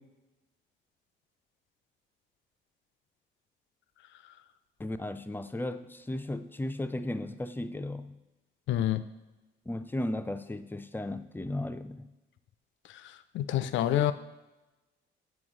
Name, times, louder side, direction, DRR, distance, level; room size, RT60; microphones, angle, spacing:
voice 1, 4.8-8.2 9.7-12.1, left 1 dB, 10° left, 10 dB, 0.3 m, -35 dB
voice 2, 8.7-9.0 13.0-14.1, left 12 dB, 75° left, 13 dB, 0.4 m, -28 dB
7.8 x 4.6 x 3.7 m, 1.1 s
cardioid pair, 90°, 20 cm